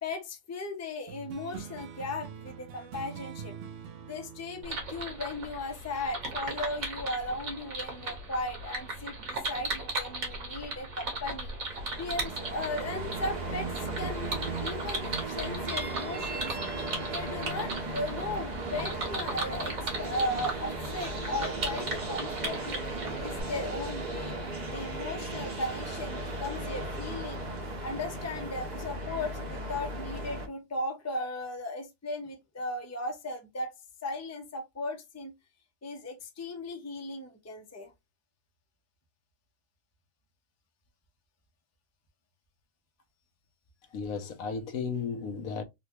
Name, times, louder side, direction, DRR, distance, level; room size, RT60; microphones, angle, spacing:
voice 1, 0.0-3.5 4.1-11.5 12.0-16.5 17.1-22.8 23.2-24.4 24.7-27.5 27.8-33.8 34.0-35.3 35.8-37.9, left 2 dB, 20° left, 0.5 m, -36 dB
sound 1, 1.1-6.0, right 7 dB, 70° right, 0.9 m, -45 dB
sound 2, 4.6-23.4, right 2 dB, 85° right, 1.8 m, -37 dB
sound 3, 11.7-30.5, right 2 dB, 40° right, 0.8 m, -36 dB
voice 2, 43.9-45.6, left 5 dB, 85° left, 1.2 m, -34 dB
3.9 x 2.2 x 2.9 m
omnidirectional pair, 1.4 m